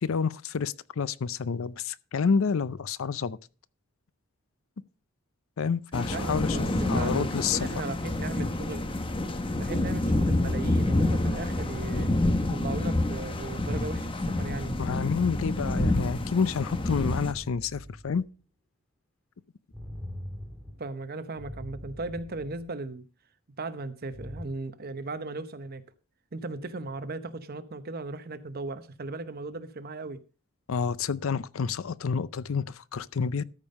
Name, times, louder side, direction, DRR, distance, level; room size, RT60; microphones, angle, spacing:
voice 1, 0.0-3.4 5.6-6.6 6.9-7.6 14.8-18.3 30.7-33.4, left 5 dB, 75° left, 0.5 m, -29 dB
sound 1, 5.9-17.3, left 1 dB, 25° left, 0.9 m, -28 dB
voice 2, 6.1-8.9 9.6-12.1 12.4-14.7 20.8-23.0 23.6-25.8 26.3-30.2, right 3 dB, 45° right, 0.9 m, -37 dB
sound 2, 16.9-18.3 19.7-20.9 21.4-22.7 24.1-24.4, equal, 5° left, 2.2 m, -42 dB
13.5 x 5.4 x 5.3 m
head